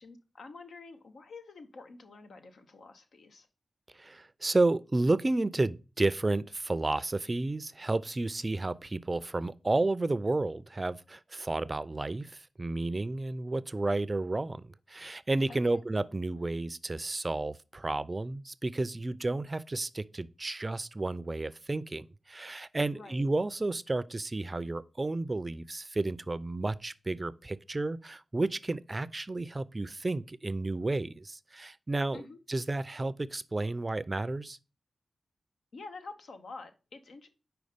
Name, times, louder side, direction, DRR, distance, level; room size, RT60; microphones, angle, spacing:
voice 1, 0.0-3.5 15.5-15.8 22.9-23.2 32.1-32.4 35.7-37.3, left 3 dB, 85° left, 0.8 m, -48 dB
voice 2, 4.0-32.2 32.5-34.6, right 2 dB, 35° right, 0.4 m, -31 dB
5.2 x 4.5 x 5.0 m
cardioid pair, 50°, 0 cm